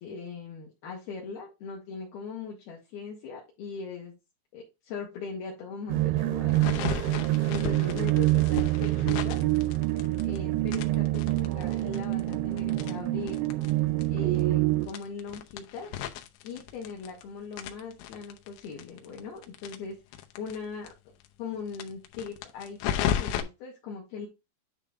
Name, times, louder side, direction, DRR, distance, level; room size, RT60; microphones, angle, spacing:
voice 1, 0.0-4.2 4.5-6.8 7.5-9.4 10.2-13.4 14.0-15.9 16.4-20.9 21.4-24.3, left 5 dB, 65° left, -2 dB, 2.9 m, -40 dB
sound 1, 5.9-14.9, right 17 dB, 80° right, 2.6 m, -26 dB
sound 2, 6.5-10.4 10.7-13.7 14.0-14.1 14.3-14.4 14.8-17.2 17.5-20.6 20.8-20.9 21.2-21.3 21.7-23.4, left 10 dB, 85° left, 3.1 m, -34 dB
9.8 x 3.7 x 3.6 m, 0.25 s
omnidirectional pair, 5.2 m